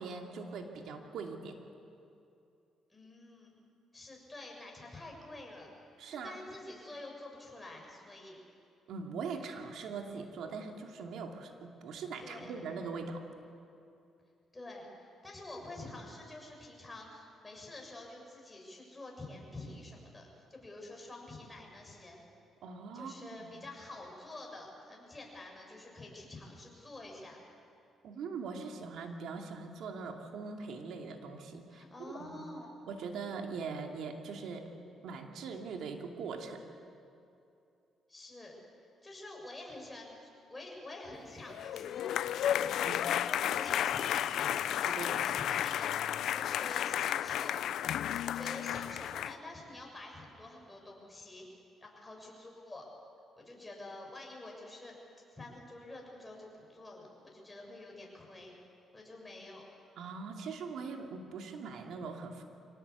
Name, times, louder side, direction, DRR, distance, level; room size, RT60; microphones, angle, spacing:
voice 1, 0.0-1.6 6.0-6.4 8.9-13.3 22.6-23.5 28.0-32.4 32.9-34.7 35.0-36.6 42.8-43.1 44.9-45.2 60.0-62.4, right 5 dB, 75° right, 3 dB, 2.6 m, -41 dB
voice 2, 2.9-3.6 3.9-5.7 6.1-8.4 12.2-12.5 14.5-22.2 22.9-27.4 31.7-32.7 38.1-38.6 39.0-47.6 48.1-51.5 51.8-52.9 53.4-54.9 55.3-58.5 58.9-59.7, left 2 dB, 15° left, 0 dB, 6.9 m, -48 dB
sound 1, 41.5-49.3, left 11 dB, 75° left, 0.5 m, -32 dB
24.5 x 18.5 x 8.3 m, 2.7 s
cardioid pair, 90°, 0 cm